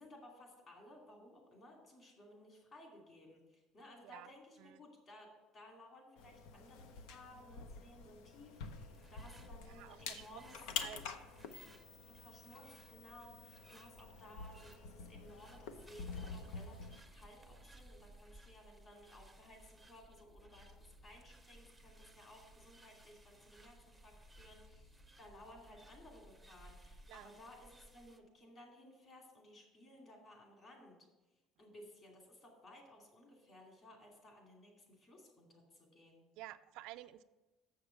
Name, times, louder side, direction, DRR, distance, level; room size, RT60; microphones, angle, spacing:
voice 1, 0.0-10.7 12.1-24.9 25.2-31.0 31.6-36.2, left 1 dB, 35° left, 0 dB, 2.4 m, -58 dB
sound 1, 6.2-17.0, left 5 dB, 90° left, 0.7 m, -48 dB
sound 2, 8.0-27.9, left 2 dB, 60° left, 1.3 m, -68 dB
sound 3, 8.5-28.2, right 1 dB, 5° right, 0.6 m, -62 dB
voice 2, 9.7-10.4 10.8-11.2 27.1-27.3 36.4-37.2, right 15 dB, 75° right, 11 dB, 0.3 m, -51 dB
7.1 x 6.6 x 5.7 m, 1.1 s
cardioid pair, 150°, 0 cm